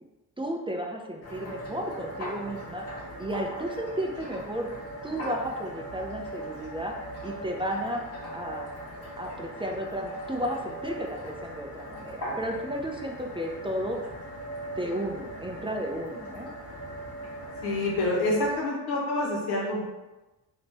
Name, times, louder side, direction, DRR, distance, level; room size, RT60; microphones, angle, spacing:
voice 1, 0.4-2.8 3.2-4.7 5.0-6.9 7.2-8.0 8.3-8.7 9.2-14.0 14.8-16.5, equal, 15° right, 1 dB, 0.5 m, -33 dB
sound 1, 1.2-18.6, equal, 35° left, 1.3 m, -39 dB
voice 2, 17.6-19.8, left 2 dB, 90° left, -4 dB, 1.4 m, -27 dB
3.5 x 3.0 x 4.2 m, 1.1 s
cardioid pair, 90°, 39 cm